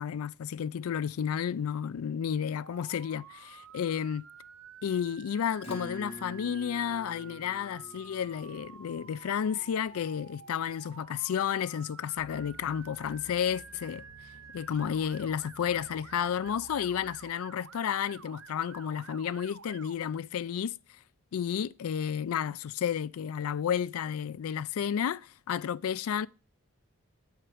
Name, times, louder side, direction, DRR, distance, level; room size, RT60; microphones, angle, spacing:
voice 1, 0.0-4.2 4.8-14.0 14.5-20.8 21.3-26.3, left 8 dB, 80° left, 0.4 m, -32 dB
Motor vehicle (road) / Siren, 2.6-19.9, right 7 dB, 70° right, 0.6 m, -51 dB
Acoustic guitar / Strum, 5.6-10.5, left 1 dB, 25° left, 1.5 m, -47 dB
sound 1, 12.2-17.9, right 1 dB, 55° left, 1.0 m, -55 dB
7.9 x 4.5 x 4.8 m
head